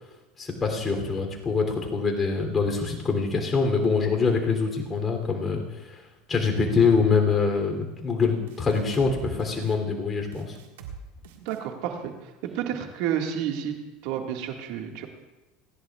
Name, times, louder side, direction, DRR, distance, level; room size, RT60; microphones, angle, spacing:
voice 1, 0.4-6.0 6.3-10.5, left 4 dB, 25° left, 3 dB, 3.1 m, -24 dB
sound 1, 8.5-9.1 9.4-9.8 10.3-11.0 11.2-11.6, right 8 dB, 85° right, 1.7 m, -43 dB
voice 2, 11.4-12.1 12.5-13.7 14.0-15.1, right 9 dB, 65° right, 3 dB, 1.9 m, -30 dB
30.0 x 11.0 x 2.4 m, 1.1 s
supercardioid pair, 110°, 0 cm